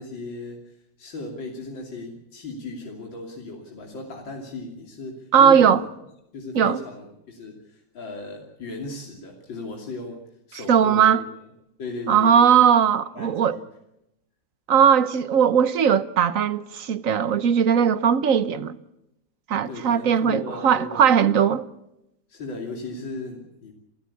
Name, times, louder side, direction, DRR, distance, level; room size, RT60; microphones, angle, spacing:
voice 1, 0.0-5.9 6.3-10.2 10.5-11.2 11.8-12.6 13.1-13.6 19.7-21.2 22.3-23.7, left 2 dB, 85° left, 3.6 m, -36 dB
voice 2, 5.3-5.8 6.5-6.8 10.7-11.2 12.1-13.6 14.7-18.8 19.5-21.7, right 8 dB, 50° right, 1.2 m, -18 dB
29.0 x 14.0 x 8.4 m
omnidirectional pair, 2.0 m